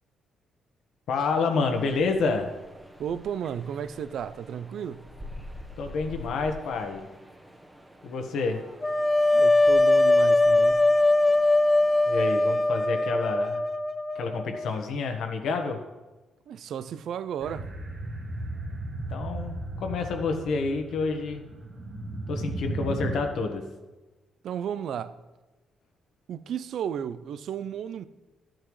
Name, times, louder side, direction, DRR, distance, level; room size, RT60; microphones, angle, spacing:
voice 1, 1.1-2.5 5.8-7.1 8.0-8.6 12.1-13.6 14.1-15.8 19.1-21.4 22.3-23.6, left 4 dB, 75° left, 1.3 m, -28 dB
sound 1, 1.2-12.4, left 1 dB, 10° right, 1.1 m, -47 dB
voice 2, 3.0-5.0 9.3-10.8 16.5-17.8 24.4-25.1 26.3-28.1, right 8 dB, 70° right, 0.4 m, -33 dB
sound 2, 8.8-14.7, left 2 dB, 15° left, 0.5 m, -21 dB
sound 3, 17.4-23.1, right 2 dB, 50° right, 1.9 m, -35 dB
13.0 x 8.9 x 3.2 m
cardioid pair, 90°, 0 cm